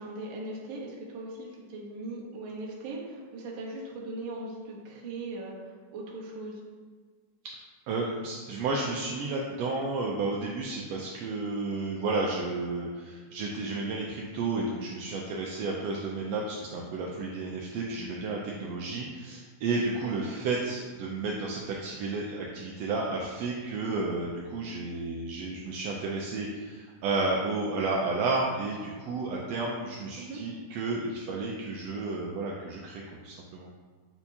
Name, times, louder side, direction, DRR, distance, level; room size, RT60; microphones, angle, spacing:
voice 1, 0.0-6.6 20.0-20.2 30.2-30.4, right 2 dB, 55° right, -4 dB, 1.4 m, -39 dB
voice 2, 7.9-33.7, right 3 dB, 80° right, -2 dB, 1.5 m, -32 dB
7.9 x 4.4 x 2.8 m, 1.5 s
omnidirectional pair, 3.4 m